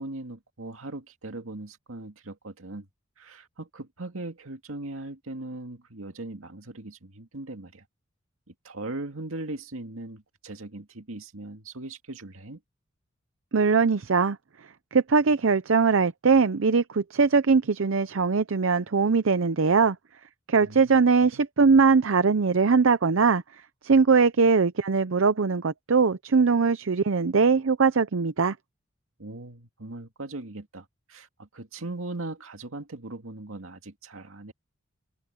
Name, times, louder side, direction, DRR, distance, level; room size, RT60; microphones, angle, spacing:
voice 1, 0.0-2.9 3.2-7.8 8.6-12.6 20.6-21.4 29.2-34.5, right 2 dB, 90° right, 2.2 m, -39 dB
voice 2, 13.5-14.4 14.9-20.0 20.5-23.4 23.8-28.5, right 5 dB, 70° right, 0.6 m, -21 dB
open air
head